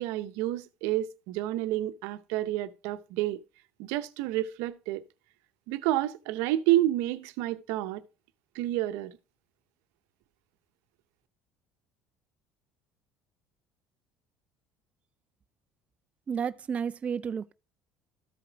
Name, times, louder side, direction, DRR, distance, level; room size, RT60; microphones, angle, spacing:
voice 1, 0.0-3.4 3.8-5.0 5.7-8.0 8.5-9.1, right 14 dB, 80° right, 0.7 m, -29 dB
voice 2, 16.3-17.5, right 7 dB, 30° right, 0.3 m, -31 dB
13.5 x 4.9 x 3.4 m
supercardioid pair, 95°, 4 cm